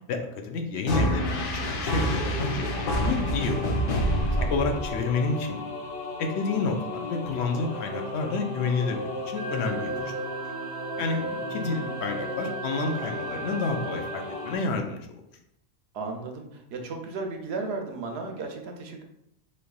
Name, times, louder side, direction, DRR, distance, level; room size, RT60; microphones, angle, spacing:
voice 1, 0.0-3.6 4.5-5.6 6.2-9.9 11.0-11.2 11.5-15.0, left 4 dB, 90° left, 5 dB, 0.9 m, -29 dB
sound 1, 0.9-5.2, equal, 60° left, 0.8 m, -27 dB
sound 2, 2.4-14.6, left 1 dB, 30° left, 1.1 m, -35 dB
voice 2, 4.3-4.7 11.1-11.4 15.9-19.0, right 3 dB, 80° right, 3 dB, 0.9 m, -35 dB
Wind instrument woodwind instrument, 9.3-14.8, right 6 dB, 55° right, 0.6 m, -39 dB
4.0 x 3.2 x 2.3 m, 0.78 s
omnidirectional pair, 1.1 m